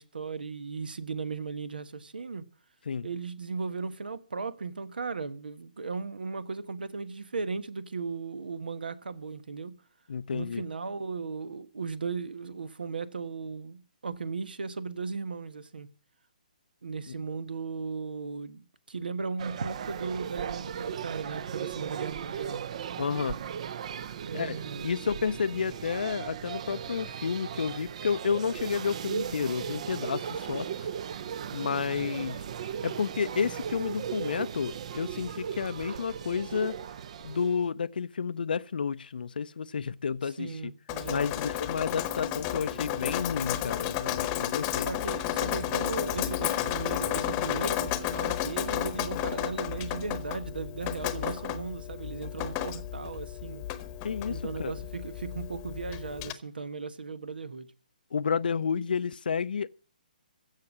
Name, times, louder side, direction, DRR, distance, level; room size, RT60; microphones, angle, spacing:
voice 1, 0.0-2.4 3.0-9.7 10.3-15.9 16.8-22.6 24.2-24.9 40.2-41.3 44.6-53.6 54.3-57.7, right 4 dB, 90° right, 1.3 m, -36 dB
voice 2, 10.1-10.6 17.1-17.2 23.0-23.4 24.3-30.9 31.5-32.5 32.8-36.8 37.2-40.7 41.1-44.9 54.0-54.7 58.1-59.7, left 6 dB, 75° left, 0.5 m, -31 dB
sound 1, 19.4-37.7, right 8 dB, 45° right, 0.6 m, -37 dB
Drip, 40.9-56.3, left 12 dB, 20° left, 1.0 m, -32 dB
15.5 x 5.8 x 9.5 m
hypercardioid pair, 160°, 5 cm